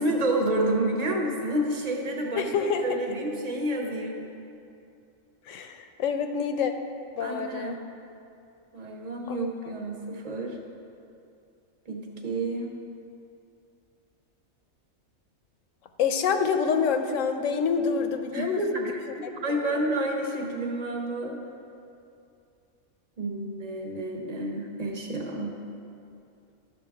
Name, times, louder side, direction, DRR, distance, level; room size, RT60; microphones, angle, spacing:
voice 1, 0.0-2.5 2.8-4.2 7.2-7.8 8.7-10.6 11.9-12.7 18.3-21.4 23.2-25.6, right 1 dB, 35° right, 1 dB, 0.9 m, -29 dB
voice 2, 2.4-2.8 5.5-6.7 7.2-7.8 9.3-9.5 16.0-18.9 19.5-19.6, left 6 dB, 75° left, 7 dB, 0.9 m, -27 dB
11.5 x 6.7 x 3.5 m, 2.6 s
omnidirectional pair, 1.4 m